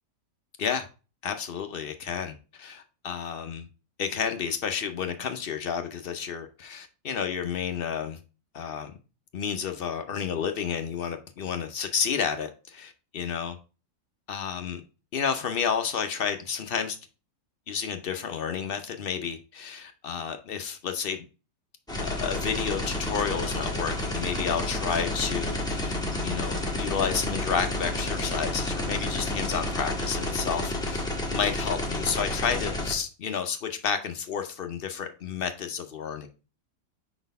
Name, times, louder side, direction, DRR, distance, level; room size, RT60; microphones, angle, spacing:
voice 1, 1.2-3.7 4.0-8.2 8.5-8.9 9.3-13.6 14.3-14.8 15.1-17.0 17.7-21.2 22.0-36.3, left 7 dB, 65° left, 0.5 m, -31 dB
sound 1, 21.9-32.9, left 1 dB, 5° left, 1.2 m, -30 dB
4.9 x 4.1 x 5.2 m
omnidirectional pair, 1.8 m